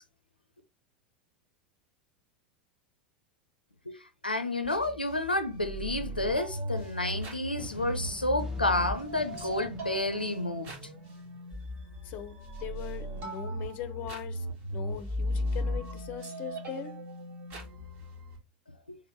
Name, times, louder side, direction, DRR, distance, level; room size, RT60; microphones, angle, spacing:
voice 1, 4.2-10.7 18.9-19.0, left 2 dB, 90° left, 0.4 m, -30 dB
sound 1, 4.6-18.4, equal, 45° right, 1.5 m, -37 dB
sound 2, 7.6-11.5, right 2 dB, 10° right, 0.7 m, -49 dB
voice 2, 12.0-14.5 14.7-17.0, left 9 dB, 40° left, 0.6 m, -41 dB
3.5 x 3.1 x 3.1 m
figure-of-eight pair, 85°, 5 cm